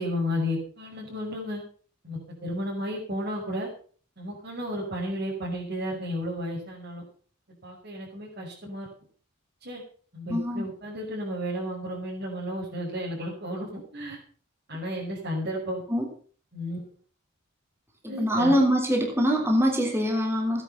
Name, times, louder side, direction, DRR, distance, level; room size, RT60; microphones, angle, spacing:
voice 1, 0.0-1.6 2.0-3.7 4.2-7.0 7.6-8.9 9.6-9.8 10.1-14.2 14.7-15.8 16.5-16.8 18.1-18.6, equal, 50° right, -5 dB, 6.0 m, -33 dB
voice 2, 10.3-10.7 15.9-16.1 18.0-20.6, equal, 10° right, 1 dB, 3.2 m, -23 dB
16.5 x 10.5 x 5.8 m, 0.44 s
head